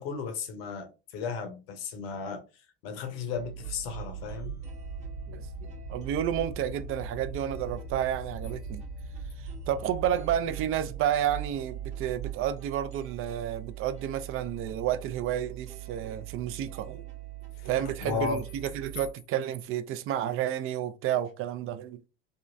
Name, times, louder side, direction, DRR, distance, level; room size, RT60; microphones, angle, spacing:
voice 1, 0.0-2.4 2.8-4.6 17.6-18.4, left 5 dB, 80° left, 0.9 m, -35 dB
sound 1, 3.4-19.1, right 4 dB, 25° right, 1.0 m, -43 dB
sound 2, 3.6-12.5, right 11 dB, 65° right, 0.9 m, -41 dB
voice 2, 5.9-8.8 9.4-17.1 17.6-22.1, right 10 dB, 45° right, 0.4 m, -31 dB
3.6 x 2.2 x 2.5 m
supercardioid pair, 95°, 29 cm